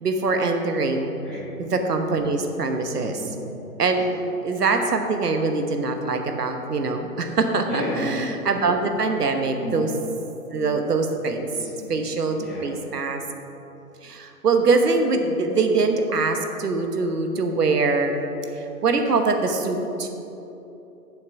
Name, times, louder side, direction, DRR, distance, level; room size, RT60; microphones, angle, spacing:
voice 1, 0.0-1.2 1.6-3.2 3.8-9.9 10.5-11.5 11.9-13.2 14.0-18.1 18.5-20.1, right 3 dB, 90° right, 5 dB, 1.2 m, -23 dB
voice 2, 3.1-3.4 7.6-8.1 9.5-9.9 11.5-11.9 12.4-12.7, left 2 dB, ahead, -12 dB, 1.3 m, -32 dB
8.4 x 7.1 x 4.6 m, 3.0 s
hypercardioid pair, 150°, 46 cm